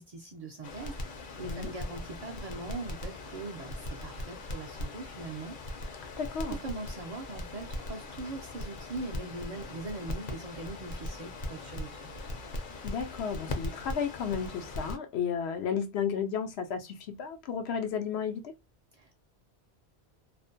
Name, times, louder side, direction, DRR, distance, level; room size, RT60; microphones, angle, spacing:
voice 1, 0.0-6.0 6.5-12.0 18.9-19.1, right 3 dB, 55° right, 0.5 m, -41 dB
Crackle, 0.6-15.0, left 1 dB, 60° left, 0.7 m, -40 dB
voice 2, 6.2-6.6 12.8-18.5, left 7 dB, 85° left, 0.8 m, -33 dB
2.5 x 2.1 x 2.5 m
omnidirectional pair, 1.1 m